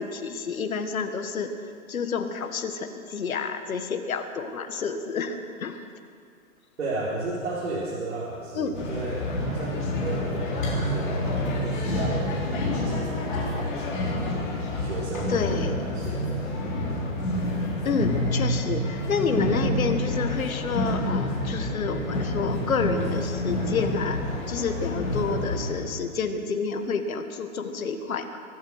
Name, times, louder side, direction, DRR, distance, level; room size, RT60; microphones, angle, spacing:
voice 1, 0.0-5.8 8.5-8.8 15.3-15.7 17.8-24.2 24.5-28.4, left 5 dB, 80° left, 7 dB, 1.7 m, -29 dB
voice 2, 6.8-11.3 11.6-13.8 14.8-16.6, right 2 dB, 65° right, -7 dB, 3.8 m, -33 dB
sound 1, 8.7-25.7, left 1 dB, 35° left, 3.6 m, -28 dB
23.5 x 9.1 x 6.4 m, 2.2 s
hypercardioid pair, 170°, 41 cm